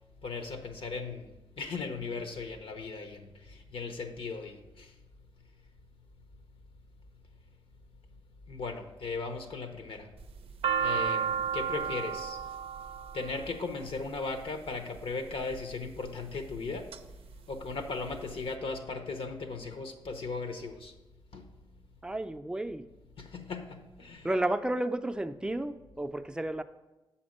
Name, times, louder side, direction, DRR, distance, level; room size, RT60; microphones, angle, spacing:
voice 1, 0.2-1.3 1.6-4.9 8.5-10.1 10.8-12.4 13.1-16.9 17.5-20.9 21.3-21.5 23.2-24.3, left 4 dB, 75° left, 7 dB, 0.9 m, -37 dB
sound 1, 10.2-14.4 15.3-15.7 16.3-17.0 17.3-17.4 17.6-18.4, right 7 dB, 85° right, 0.5 m, -32 dB
voice 2, 22.0-22.9 24.2-26.6, right 1 dB, 10° right, 8 dB, 0.5 m, -32 dB
7.1 x 4.3 x 6.5 m, 1.1 s
cardioid pair, 70°, 10 cm